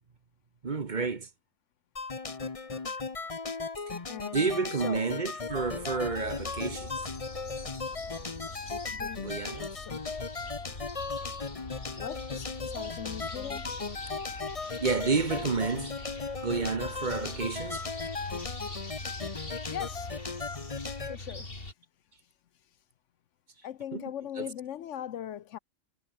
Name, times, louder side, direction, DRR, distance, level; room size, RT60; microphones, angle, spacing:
voice 1, 0.6-1.3 4.3-7.1 9.2-9.7 14.8-16.0 16.4-17.9 23.9-24.0 24.4-24.5, right 4 dB, 40° right, 1.1 m, -30 dB
sound 1, 2.0-21.2, left 4 dB, 30° left, 1.1 m, -37 dB
voice 2, 4.1-5.0 8.9-9.3 9.7-10.0 11.9-13.8 19.7-20.1 21.1-21.6 23.6-25.6, left 10 dB, 70° left, 1.0 m, -40 dB
sound 2, 5.5-21.7, left 2 dB, 45° left, 3.6 m, -43 dB
omnidirectional pair, 1.4 m